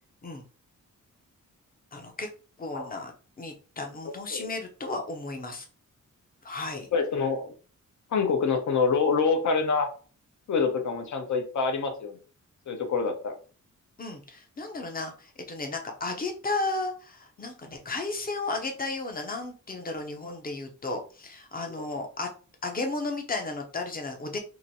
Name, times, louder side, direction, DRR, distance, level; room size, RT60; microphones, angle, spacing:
voice 1, 1.9-2.3 2.6-5.7 6.4-6.9 14.0-22.3 22.6-24.4, left 3 dB, 30° left, 4 dB, 0.7 m, -34 dB
voice 2, 6.9-7.5 8.1-9.9 10.5-12.2 12.7-13.4 21.7-21.8, left 5 dB, 65° left, 4 dB, 0.9 m, -26 dB
3.0 x 2.6 x 4.0 m, 0.38 s
wide cardioid pair, 170°, 32 cm